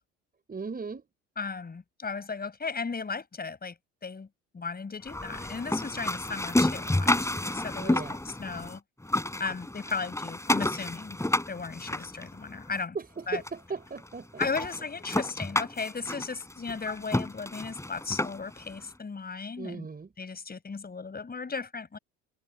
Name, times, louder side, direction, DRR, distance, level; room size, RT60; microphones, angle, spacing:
voice 1, 0.5-1.0 5.9-6.0 7.8-8.2 12.9-14.7 19.6-20.1, right 5 dB, 25° right, 5.5 m, -37 dB
voice 2, 1.4-3.7 4.0-4.3 4.5-8.8 9.4-11.2 11.5-13.0 13.3-13.4 14.4-19.9 20.2-22.0, left 4 dB, 25° left, 7.6 m, -36 dB
sound 1, 5.1-8.8 9.0-12.8 13.5-13.6 14.0-14.1 14.4-18.6, left 1 dB, 10° left, 4.5 m, -30 dB
hypercardioid pair, 70°, 36 cm